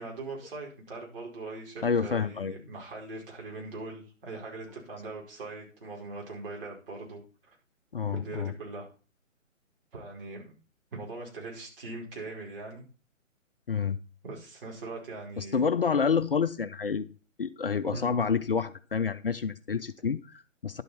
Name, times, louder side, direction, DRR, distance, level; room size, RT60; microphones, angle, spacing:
voice 1, 0.0-7.2 8.1-8.9 9.9-10.5 10.9-12.8 14.2-15.6 17.9-18.1, right 3 dB, 45° right, -2 dB, 4.9 m, -41 dB
voice 2, 1.8-2.6 7.9-8.5 13.7-14.0 15.4-17.1 17.4-20.8, left 6 dB, 45° left, 12 dB, 0.6 m, -28 dB
11.0 x 8.1 x 4.3 m, 0.36 s
figure-of-eight pair, 135°, 39 cm